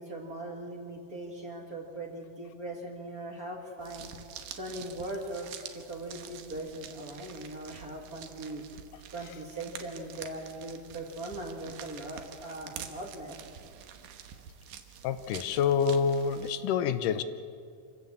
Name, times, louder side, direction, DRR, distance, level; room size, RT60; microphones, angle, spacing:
voice 1, 0.0-4.1 4.6-5.5 5.7-8.6 9.1-13.4, right 1 dB, 35° right, 1 dB, 1.8 m, -40 dB
sound 1, 3.8-16.5, right 9 dB, 85° right, 2.8 m, -47 dB
voice 2, 15.0-17.2, left 6 dB, 85° left, 12 dB, 2.4 m, -27 dB
27.0 x 16.5 x 7.2 m, 2.4 s
omnidirectional pair, 3.7 m